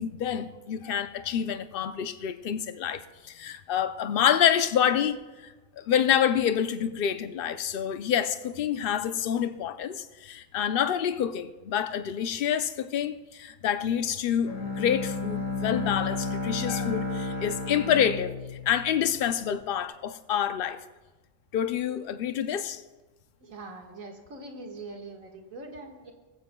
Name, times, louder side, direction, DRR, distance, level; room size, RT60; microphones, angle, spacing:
voice 1, 0.0-5.2 5.4-18.3 18.7-20.8 21.5-22.8, left 9 dB, 55° left, 0.7 m, -27 dB
Bowed string instrument, 14.5-19.5, left 3 dB, 85° left, 2.1 m, -32 dB
voice 2, 23.4-26.1, right 2 dB, 85° right, 2.1 m, -42 dB
18.5 x 15.0 x 2.3 m
omnidirectional pair, 1.4 m